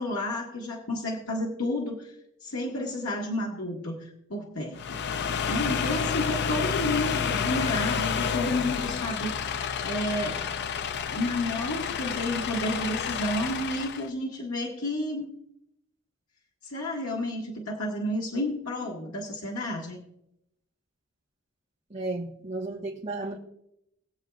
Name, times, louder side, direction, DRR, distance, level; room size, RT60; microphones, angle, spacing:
voice 1, 0.0-2.1 2.4-10.5 11.1-15.3 16.6-20.0, left 1 dB, 90° left, -2 dB, 1.6 m, -31 dB
sound 1, 4.7-14.1, left 7 dB, 55° left, 0.5 m, -30 dB
voice 2, 21.9-23.4, right 2 dB, 35° right, -5 dB, 1.3 m, -33 dB
21.0 x 7.6 x 2.4 m, 0.80 s
head